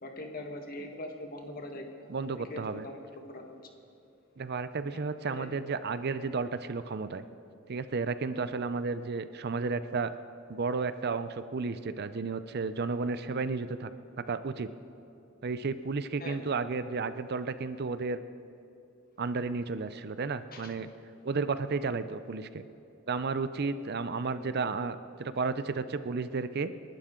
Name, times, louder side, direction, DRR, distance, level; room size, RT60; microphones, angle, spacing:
voice 1, 0.0-2.1 2.5-3.6 4.9-5.0 5.4-5.5 16.2-16.5 20.5-20.7, left 1 dB, 45° left, 3 dB, 1.7 m, -42 dB
voice 2, 2.1-2.9 4.4-7.2 7.7-10.1 10.5-13.9 14.3-14.7 15.4-18.2 19.2-20.9 21.2-22.7 23.1-26.7, right 4 dB, 50° right, 12 dB, 0.5 m, -32 dB
29.0 x 11.5 x 3.8 m, 2.7 s
head